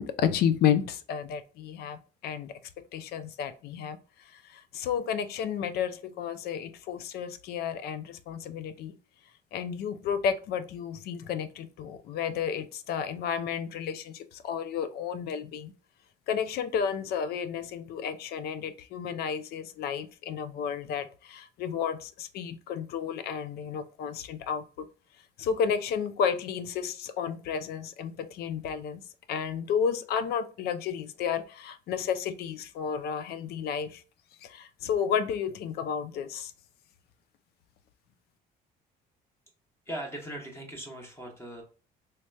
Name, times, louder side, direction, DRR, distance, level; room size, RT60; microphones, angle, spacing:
voice 1, 0.0-2.5 2.9-4.0 4.3-8.9 9.5-15.7 16.3-24.9 25.4-29.0 29.3-34.0 34.4-36.5, left 7 dB, 70° left, 0.4 m, -32 dB
voice 2, 39.9-41.6, right 1 dB, 15° left, 0.9 m, -39 dB
3.2 x 2.8 x 2.2 m
cardioid pair, 110°, 17 cm